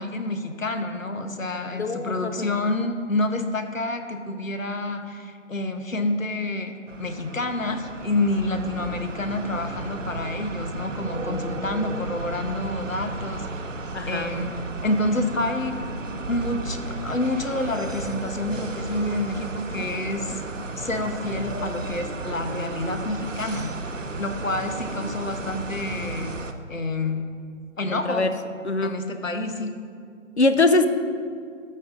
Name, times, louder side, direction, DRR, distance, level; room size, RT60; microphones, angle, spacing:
voice 1, 0.0-13.5 14.1-14.5 14.8-15.8 16.3-20.4 20.8-26.3 26.7-27.3 27.8-28.3 28.8-29.7, left 2 dB, 90° left, 7 dB, 1.1 m, -28 dB
voice 2, 1.7-2.5 13.9-14.3 27.9-28.3 28.6-29.0 30.4-30.9, left 3 dB, 60° left, 9 dB, 0.7 m, -22 dB
sound 1, 6.9-26.5, right 3 dB, 75° right, 0.8 m, -34 dB
13.5 x 5.7 x 3.8 m, 2.2 s
figure-of-eight pair, 175°, 39 cm